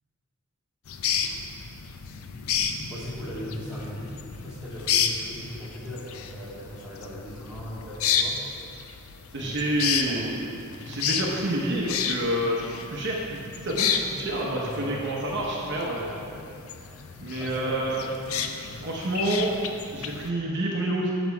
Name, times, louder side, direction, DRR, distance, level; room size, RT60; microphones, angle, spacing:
sound 1, 0.9-20.3, left 7 dB, 70° left, 0.5 m, -32 dB
voice 1, 2.9-8.4 9.4-9.8 10.1-10.3 14.5-15.4 15.8-16.3 16.8-17.8, equal, 5° right, -10 dB, 2.0 m, -39 dB
voice 2, 9.3-10.5 10.8-16.0 17.2-18.0 18.7-19.6 19.9-21.1, right 1 dB, 55° right, -3 dB, 0.9 m, -28 dB
7.4 x 6.0 x 4.6 m, 2.5 s
head